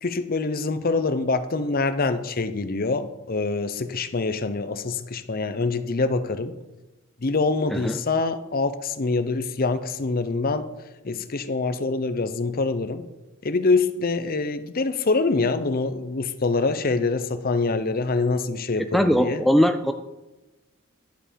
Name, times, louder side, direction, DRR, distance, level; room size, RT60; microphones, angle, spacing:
voice 1, 0.0-6.6 7.2-10.7 11.0-13.1 13.4-19.4, left 3 dB, 45° left, 11 dB, 0.7 m, -25 dB
voice 2, 18.9-19.9, equal, ahead, 7 dB, 0.3 m, -20 dB
11.5 x 6.9 x 5.2 m, 1.1 s
head